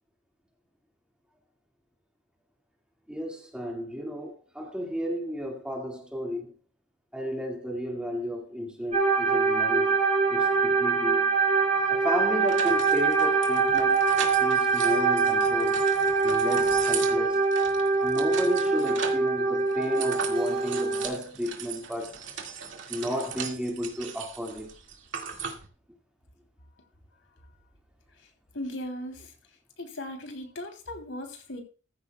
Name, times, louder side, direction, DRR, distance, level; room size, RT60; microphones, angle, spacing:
voice 1, 3.1-6.5 7.1-10.0 10.3-11.4 11.9-14.1 14.4-17.5 18.0-22.1 22.9-24.7, equal, 5° right, 2.1 m, -33 dB
sound 1, 8.9-21.1, right 4 dB, 35° right, 3.8 m, -24 dB
sound 2, 11.8-11.9 12.5-19.3 19.7-25.7, right 7 dB, 70° right, 2.1 m, -38 dB
voice 2, 28.5-29.3 29.8-31.6, left 1 dB, 70° left, 3.2 m, -37 dB
15.0 x 14.5 x 2.3 m
head